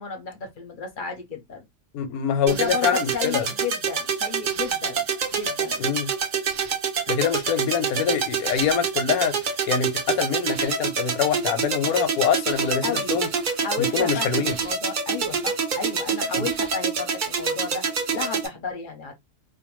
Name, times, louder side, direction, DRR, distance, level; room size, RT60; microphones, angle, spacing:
voice 1, 0.0-1.7 2.5-5.0 5.3-5.8 12.8-13.2 13.5-19.1, left 5 dB, 55° left, 0.6 m, -33 dB
voice 2, 1.9-3.5 5.8-6.1 7.1-13.3 13.8-14.6 16.4-16.5, left 7 dB, 85° left, 1.1 m, -25 dB
sound 1, 2.5-18.5, right 6 dB, 60° right, 0.5 m, -27 dB
2.5 x 2.2 x 2.9 m
omnidirectional pair, 1.5 m